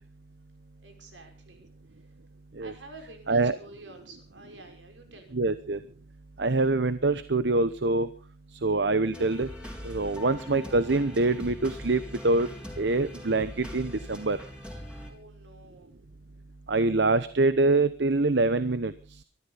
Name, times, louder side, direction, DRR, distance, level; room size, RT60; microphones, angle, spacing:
voice 1, 0.8-2.1 2.6-5.4 15.1-15.9, right 2 dB, 85° right, 4 dB, 5.5 m, -49 dB
voice 2, 5.3-5.8 6.4-8.1 8.6-9.5 9.8-12.5 12.8-14.4 16.7-18.9, right 2 dB, 65° right, 13 dB, 0.9 m, -25 dB
sound 1, 9.1-15.1, equal, 5° right, 4.3 m, -41 dB
23.5 x 13.5 x 4.1 m, 0.36 s
head